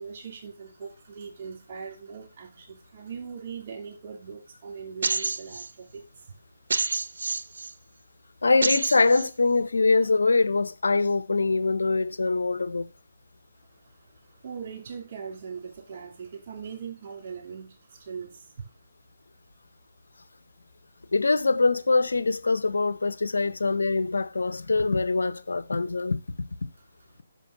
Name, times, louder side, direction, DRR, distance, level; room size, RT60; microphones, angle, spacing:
voice 1, 0.0-6.0 14.0-14.1 14.4-18.5, right 6 dB, 45° right, 2.9 m, -40 dB
sound 1, 5.0-5.7 6.7-7.7 8.6-9.3, right 4 dB, 75° right, 0.6 m, -28 dB
voice 2, 8.4-12.9 21.1-26.2, left 3 dB, 85° left, 0.6 m, -23 dB
6.3 x 5.2 x 6.6 m
hypercardioid pair, 150°, 0 cm